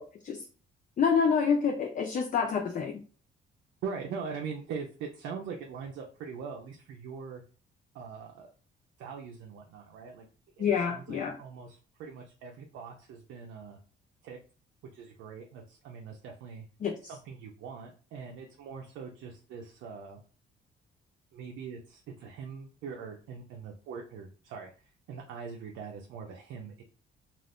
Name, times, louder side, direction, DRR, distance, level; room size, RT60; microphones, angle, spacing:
voice 1, 1.0-3.0 10.6-11.4 16.8-16.9, left 6 dB, 40° left, 4 dB, 0.4 m, -27 dB
voice 2, 3.8-7.4 7.9-8.5 9.0-10.3 10.6-13.8 14.2-14.4 14.9-16.7 17.1-20.2 21.3-24.7 25.1-26.8, right 5 dB, 85° right, 0 dB, 0.5 m, -42 dB
2.4 x 2.4 x 3.4 m, 0.38 s
cardioid pair, 90°, 20 cm